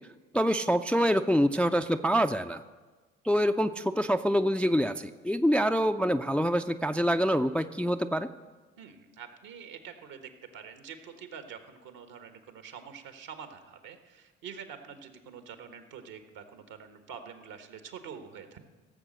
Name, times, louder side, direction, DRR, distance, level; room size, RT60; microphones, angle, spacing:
voice 1, 0.3-2.6 3.2-8.3, equal, 5° left, 9 dB, 0.4 m, -26 dB
voice 2, 8.8-18.6, right 7 dB, 65° right, 8 dB, 1.4 m, -46 dB
16.0 x 7.3 x 6.5 m, 1.3 s
hypercardioid pair, 50°, 36 cm